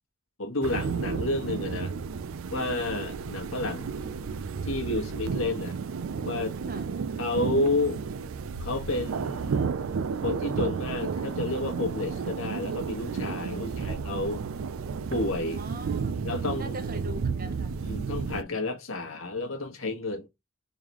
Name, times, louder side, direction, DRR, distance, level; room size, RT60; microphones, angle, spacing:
voice 1, 0.4-1.9 2.5-3.9 4.6-5.8 6.2-6.6 7.2-8.0 8.6-9.8 10.2-14.4 15.1-15.6 16.2-16.8 17.8-20.3, left 2 dB, 75° left, 1.2 m, -30 dB
sound 1, 0.6-18.4, right 5 dB, 70° right, 0.4 m, -32 dB
voice 2, 13.5-13.9 15.5-16.2 16.6-17.7, right 1 dB, 45° right, 0.8 m, -42 dB
3.8 x 3.2 x 2.9 m
head